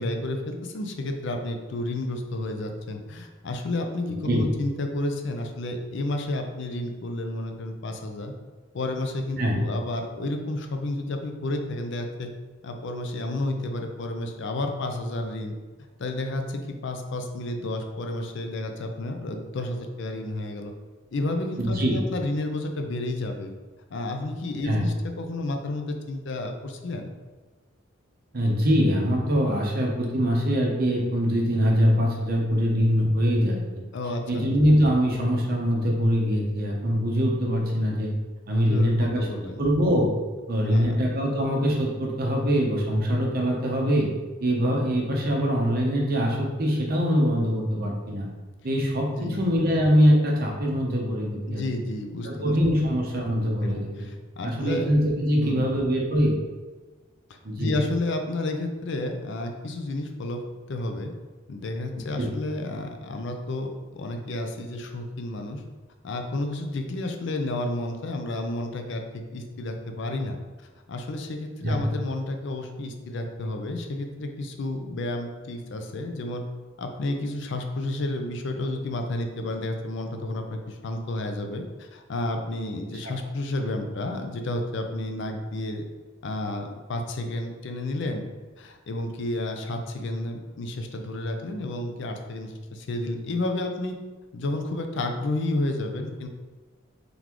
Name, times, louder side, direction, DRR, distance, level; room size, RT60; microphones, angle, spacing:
voice 1, 0.0-8.3 8.7-12.3 12.6-15.6 16.0-20.7 21.1-23.5 23.9-27.1 33.9-34.4 38.7-39.6 40.6-41.0 49.1-49.4 51.5-52.5 53.6-54.9 55.4-55.7 57.6-60.4 60.7-61.1 61.5-65.6 66.0-70.4 70.9-76.4 76.8-85.8 86.2-88.3 88.6-94.0 94.3-96.3, left 2 dB, 60° left, 5 dB, 0.5 m, -31 dB
voice 2, 4.0-4.5 9.4-9.6 21.6-22.0 24.6-24.9 28.3-33.6 34.3-38.1 38.5-39.3 39.6-40.1 40.5-44.1 44.4-48.3 48.6-51.6 52.2-53.9 54.4-56.3 57.4-57.7 62.2-62.3 71.6-71.9 83.0-83.2, equal, 50° right, -1 dB, 0.8 m, -23 dB
3.9 x 3.4 x 3.0 m, 1.3 s
head